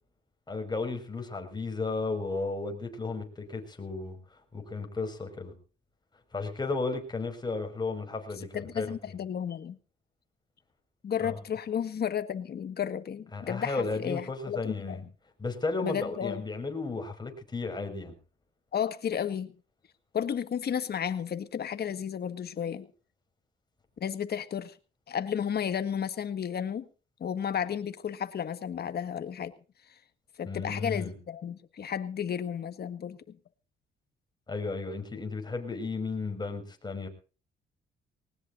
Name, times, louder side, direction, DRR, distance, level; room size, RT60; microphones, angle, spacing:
voice 1, 0.5-5.6 6.3-9.2 11.2-11.4 13.3-15.0 15.4-18.1 30.5-31.2 34.5-37.1, left 3 dB, 20° left, 4 dB, 5.5 m, -34 dB
voice 2, 8.5-9.8 11.0-15.0 15.8-16.4 18.7-19.5 20.1-22.9 24.0-24.8 25.1-26.9 27.2-29.5 30.4-33.4, left 8 dB, 55° left, 11 dB, 1.7 m, -33 dB
20.5 x 19.5 x 2.6 m, 0.36 s
cardioid pair, 90°, 20 cm